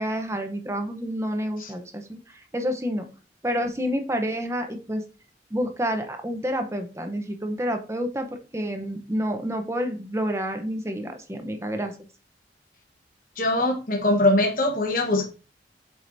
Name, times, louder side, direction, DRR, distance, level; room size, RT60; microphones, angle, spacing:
voice 1, 0.0-2.2 2.5-3.1 3.4-5.0 5.5-8.3 8.5-11.9, equal, 15° right, 6 dB, 0.8 m, -28 dB
voice 2, 13.4-15.3, left 1 dB, 50° left, 2 dB, 1.2 m, -22 dB
7.5 x 4.9 x 2.7 m, 0.34 s
head